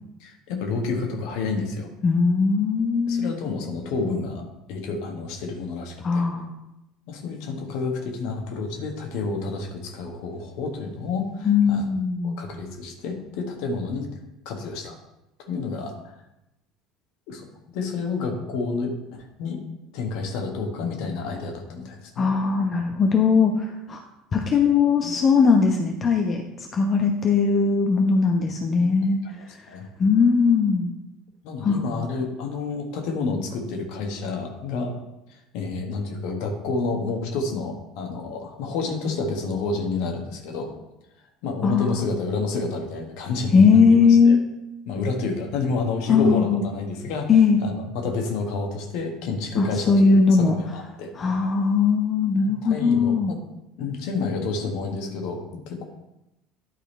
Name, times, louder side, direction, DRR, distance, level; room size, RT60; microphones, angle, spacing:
voice 1, 0.2-1.9 3.1-6.2 7.1-11.9 12.2-14.1 14.4-14.9 15.5-16.2 17.3-17.5 17.7-18.9 19.4-19.6 19.9-22.3 28.8-28.9 29.7-29.8 31.4-34.9 35.3-40.7 41.4-43.8 44.1-44.4 44.9-47.3 47.6-50.1 50.4-51.1 52.4-53.4 53.8-55.8, left 4 dB, 55° left, 3 dB, 1.7 m, -29 dB
voice 2, 2.0-3.3 6.0-6.5 11.4-12.4 22.2-24.0 24.3-30.9 31.6-31.8 41.6-42.0 43.5-44.4 46.1-46.6 47.3-47.6 49.6-50.5 51.1-53.3, left 5 dB, 35° left, 3 dB, 1.0 m, -19 dB
11.0 x 5.0 x 4.3 m, 0.92 s
figure-of-eight pair, 65°, 0 cm